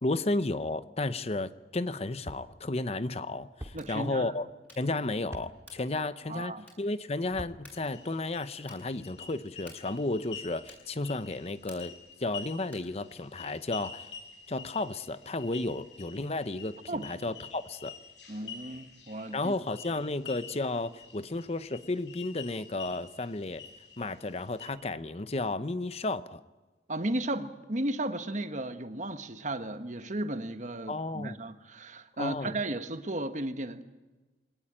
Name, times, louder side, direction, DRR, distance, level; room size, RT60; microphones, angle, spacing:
voice 1, 0.0-4.5 4.8-11.9 12.2-14.1 14.5-17.9 19.3-23.6 24.0-26.4 30.9-31.4 32.2-32.6, left 2 dB, 35° left, 13 dB, 0.8 m, -33 dB
sound 1, 2.2-2.5 3.6-3.8 5.3-5.5 7.3-7.6, equal, 15° right, 2.1 m, -41 dB
sound 2, 3.7-4.0 4.6-5.0 5.6-6.0 6.6-7.0 7.6-8.0 8.6-9.0 9.6-10.0 10.6-11.0 11.6-12.1 12.6-13.0, left 1 dB, 10° left, 7.2 m, -54 dB
voice 2, 3.7-4.3 5.9-6.0 6.3-6.6 16.9-17.1 18.3-19.5 26.9-33.8, right 1 dB, 45° right, 8 dB, 1.4 m, -34 dB
sound 3, 7.7-24.7, left 6 dB, 85° left, 6.6 m, -48 dB
24.0 x 19.0 x 8.9 m, 1.2 s
head